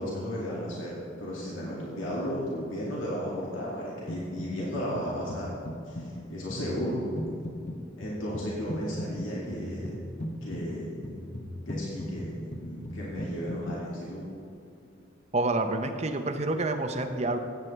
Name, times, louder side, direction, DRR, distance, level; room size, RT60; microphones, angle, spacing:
voice 1, 0.0-5.5 5.9-7.1 8.0-9.9 10.4-11.2 11.7-14.2, equal, 85° left, -6 dB, 2.3 m, -34 dB
sound 1, 4.1-4.7 5.0-13.8, left 1 dB, 40° left, 0.8 m, -38 dB
voice 2, 15.3-17.4, right 2 dB, 35° right, 7 dB, 0.7 m, -28 dB
15.5 x 8.9 x 3.3 m, 2.6 s
head